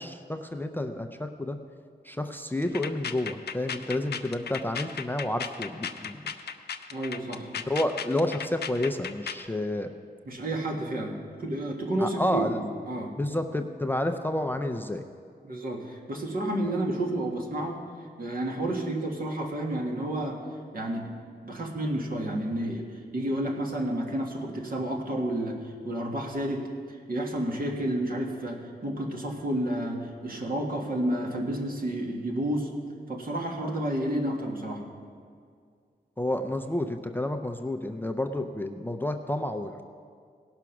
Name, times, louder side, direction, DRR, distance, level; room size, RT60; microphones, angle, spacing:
voice 1, 0.0-1.6 2.0-6.2 7.7-9.9 12.0-12.6 13.2-15.0 16.6-16.7 18.6-18.7 36.2-39.8, left 1 dB, 10° left, 6 dB, 0.4 m, -30 dB
sound 1, 2.6-9.5, left 7 dB, 80° left, 0.5 m, -36 dB
voice 2, 6.9-7.5 10.3-13.2 15.4-17.8 18.2-20.4 20.7-21.1 21.4-22.9 23.1-25.6 25.8-32.7 33.1-34.8, right 1 dB, 60° right, 0 dB, 1.7 m, -30 dB
17.5 x 6.0 x 5.9 m, 2.2 s
wide cardioid pair, 130°, 17 cm